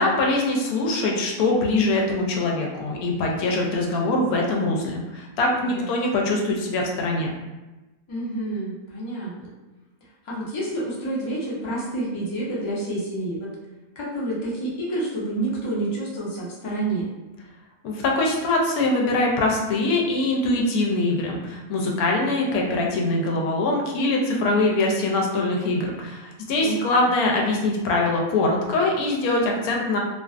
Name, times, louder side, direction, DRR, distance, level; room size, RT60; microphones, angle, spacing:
voice 1, 0.0-7.3 17.8-30.0, left 2 dB, 85° left, 0 dB, 1.1 m, -23 dB
voice 2, 5.6-5.9 8.1-9.5 10.2-13.5 14.0-17.1 26.6-27.1, right 2 dB, 45° left, -6 dB, 0.3 m, -29 dB
2.4 x 2.4 x 2.3 m, 1.1 s
omnidirectional pair, 1.5 m